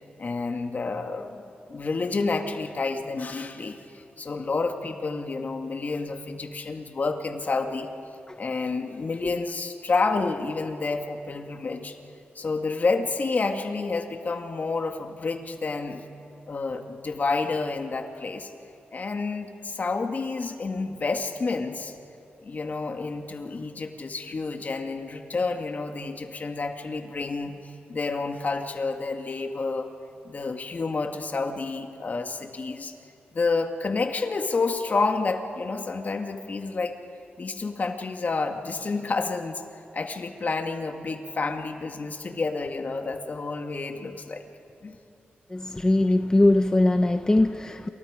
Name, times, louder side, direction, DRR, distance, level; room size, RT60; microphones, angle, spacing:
voice 1, 0.2-1.4 1.7-7.9 8.4-12.0 12.4-16.0 16.5-18.5 18.9-21.9 22.4-29.9 30.2-33.0 33.3-37.0 37.4-39.6 39.9-44.5 44.8-45.0, left 3 dB, 45° left, 5 dB, 2.0 m, -29 dB
voice 2, 45.5-47.9, left 2 dB, 20° left, 7 dB, 0.8 m, -21 dB
28.0 x 28.0 x 5.1 m, 2.7 s
cardioid pair, 85°, 4 cm